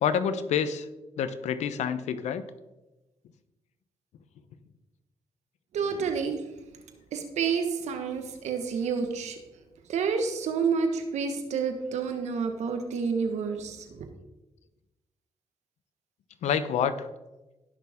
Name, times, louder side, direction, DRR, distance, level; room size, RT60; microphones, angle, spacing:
voice 1, 0.0-0.9 1.2-2.4 16.4-17.1, left 8 dB, 80° left, 13 dB, 0.8 m, -27 dB
voice 2, 5.7-6.4 7.1-9.4 9.9-13.8, right 5 dB, 80° right, 6 dB, 1.4 m, -29 dB
16.5 x 6.1 x 3.6 m, 1.0 s
supercardioid pair, 50°, 12 cm